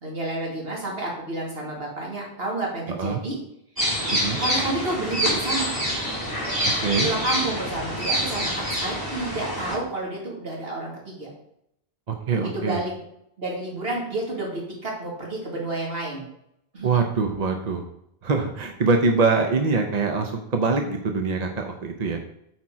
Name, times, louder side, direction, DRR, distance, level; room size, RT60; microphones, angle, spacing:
voice 1, 0.0-3.4 4.4-5.8 7.0-11.3 12.3-12.9 13.4-16.3 16.7-16.9, right 2 dB, 70° right, -2 dB, 2.5 m, -30 dB
voice 2, 2.9-3.2 4.1-4.4 6.8-7.1 12.1-12.8 16.8-17.9 18.2-22.2, right 4 dB, 45° right, 4 dB, 0.8 m, -24 dB
sound 1, 3.8-9.8, equal, 20° right, 3.3 m, -26 dB
8.3 x 4.5 x 4.8 m, 0.77 s
omnidirectional pair, 1.1 m